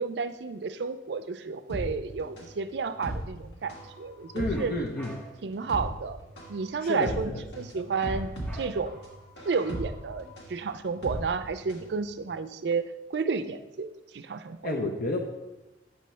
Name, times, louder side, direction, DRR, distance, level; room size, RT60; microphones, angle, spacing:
voice 1, 0.0-3.7 4.0-4.7 5.4-6.2 6.5-9.0 9.4-13.9 14.1-14.7, right 5 dB, 65° right, 11 dB, 0.4 m, -31 dB
sound 1, 1.7-11.9 12.2-12.3, right 1 dB, 65° left, 1.8 m, -37 dB
voice 2, 4.3-5.2 6.8-7.4 7.7-7.8 14.6-15.2, left 2 dB, 50° left, 1 dB, 0.6 m, -31 dB
sound 2, 4.5-5.5 8.0-9.1, right 3 dB, 10° left, 0.6 m, -47 dB
8.2 x 3.1 x 5.6 m, 1.1 s
head